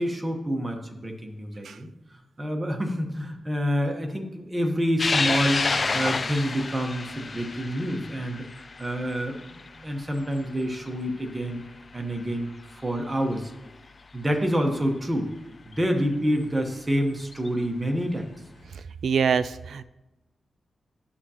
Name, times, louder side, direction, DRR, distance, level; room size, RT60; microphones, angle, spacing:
voice 1, 0.0-1.9 2.4-5.7 5.9-8.4 8.8-11.6 11.9-12.5 12.8-13.5 14.1-15.3 15.6-18.3, equal, 15° right, 3 dB, 1.0 m, -27 dB
sound 1, 5.0-11.7 12.1-12.2 13.5-13.6 15.7-15.8 17.2-17.5, left 3 dB, 35° left, 0.3 m, -29 dB
voice 2, 19.0-19.8, right 6 dB, 80° right, 13 dB, 0.3 m, -24 dB
11.5 x 5.9 x 2.8 m, 0.99 s
wide cardioid pair, 130°, 0 cm